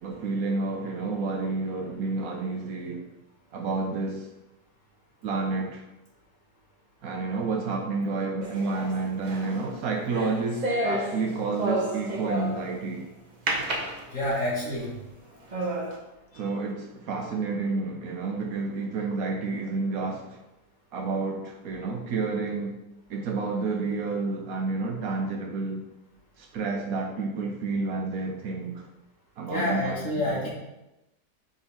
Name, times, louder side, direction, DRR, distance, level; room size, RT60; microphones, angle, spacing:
voice 1, 0.0-3.0 3.5-4.3 5.2-5.8 7.0-13.1 16.3-20.4 20.9-22.8 23.1-25.8 26.4-28.9 29.4-30.1, right 3 dB, 70° right, 2 dB, 1.1 m, -30 dB
sound 1, 8.4-12.8 13.5-14.6 15.1-15.2 15.5-16.0, right 1 dB, 35° right, 0.9 m, -31 dB
voice 2, 14.1-14.9 16.3-16.4 29.5-30.5, left 1 dB, 55° left, -6 dB, 2.3 m, -28 dB
5.1 x 4.8 x 4.2 m, 0.95 s
omnidirectional pair, 1.7 m